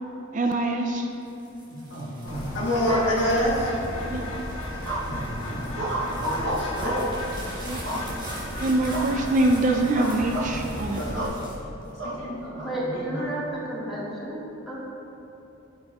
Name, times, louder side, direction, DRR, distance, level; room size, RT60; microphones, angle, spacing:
voice 1, 0.3-1.1 4.1-4.3 7.7-7.8 8.6-11.0, right 2 dB, 40° right, 3 dB, 0.4 m, -24 dB
sound 1, 1.1-12.5 13.0-13.6, right 2 dB, 20° right, 1.5 m, -46 dB
voice 2, 1.6-3.7 5.0-7.0 7.9-8.1 8.9-9.0 11.0-11.3 12.0-13.3, equal, 60° left, -5 dB, 1.5 m, -29 dB
Bird, 2.3-11.3, left 1 dB, 80° left, 1.1 m, -34 dB
sound 2, 2.8-3.9 4.8-5.3 5.7-7.2 7.8-8.4 8.9-9.2 9.5-9.6 10.0-10.5 11.1-11.4 12.0-12.7, equal, 60° right, 0.9 m, -30 dB
voice 3, 12.6-14.8, right 1 dB, ahead, -9 dB, 1.6 m, -31 dB
12.5 x 5.3 x 2.3 m, 3.0 s
head